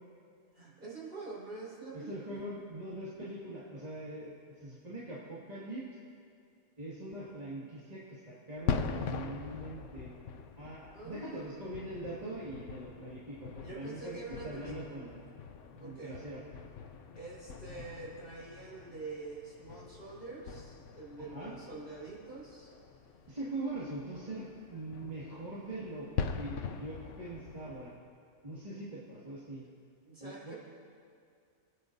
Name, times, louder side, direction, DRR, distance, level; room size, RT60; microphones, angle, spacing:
voice 1, 0.5-2.4 10.9-11.6 13.6-15.0 15.8-16.2 17.1-22.7 30.0-30.5, right 3 dB, 50° right, -8 dB, 4.3 m, -46 dB
voice 2, 1.9-5.9 6.8-10.1 10.6-15.2 15.7-16.4 21.2-21.5 23.3-28.0 28.4-29.6 30.2-30.5, right 1 dB, 35° right, -9 dB, 2.1 m, -42 dB
sound 1, 8.6-28.0, left 6 dB, 85° left, 1.1 m, -42 dB
27.5 x 9.9 x 2.7 m, 2.3 s
omnidirectional pair, 1.2 m